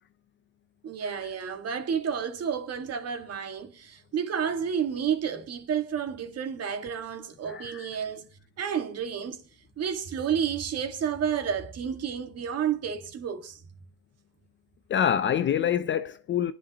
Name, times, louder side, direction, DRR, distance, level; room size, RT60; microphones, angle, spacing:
voice 1, 0.8-8.3 8.6-9.4 9.8-13.6, right 7 dB, 35° right, 2.0 m, -30 dB
voice 2, 7.5-7.9 14.9-16.5, left 9 dB, 30° left, 0.5 m, -26 dB
24.0 x 10.5 x 3.0 m
supercardioid pair, 120°, 41 cm